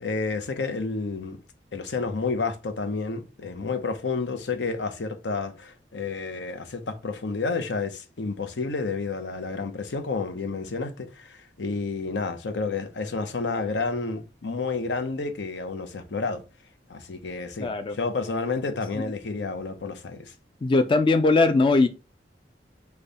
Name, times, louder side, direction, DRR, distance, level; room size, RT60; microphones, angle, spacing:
voice 1, 0.0-1.4 1.7-16.4 16.9-20.3, left 4 dB, 80° left, 0.7 m, -30 dB
voice 2, 17.6-18.0 19.0-19.1 20.6-21.9, left 3 dB, 30° left, 0.4 m, -20 dB
5.2 x 2.3 x 4.0 m
head